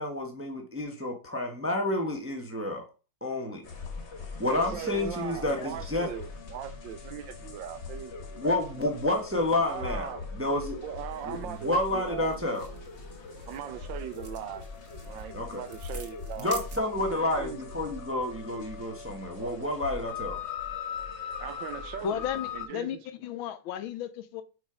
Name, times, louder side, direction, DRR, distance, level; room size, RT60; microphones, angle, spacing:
voice 1, 0.0-2.9 3.2-3.6 4.4-6.1 8.4-10.1 10.4-10.8 11.2-12.7 15.3-15.6 16.4-20.4, left 1 dB, 15° right, 0.5 m, -30 dB
sound 1, 3.6-22.7, left 5 dB, 40° left, 1.2 m, -41 dB
voice 2, 4.4-8.7 9.6-10.3 10.8-12.5 13.4-14.6 15.0-16.5 17.0-17.6 19.4-19.8 21.4-23.0, right 10 dB, 75° right, 1.2 m, -40 dB
sound 2, 11.1-17.2, right 4 dB, 40° right, 1.3 m, -49 dB
voice 3, 22.0-24.4, left 10 dB, 80° left, 1.4 m, -34 dB
5.2 x 5.0 x 4.9 m
omnidirectional pair, 2.2 m